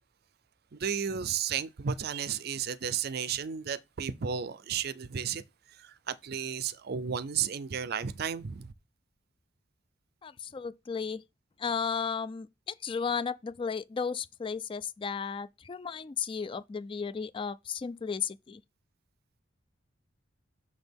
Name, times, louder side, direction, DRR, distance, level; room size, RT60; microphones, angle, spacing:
voice 1, 0.7-5.4 5.8-8.7, right 7 dB, 55° right, 0.5 m, -33 dB
voice 2, 10.2-11.2 11.6-18.6, left 6 dB, 25° left, 0.3 m, -34 dB
6.5 x 6.2 x 3.5 m
head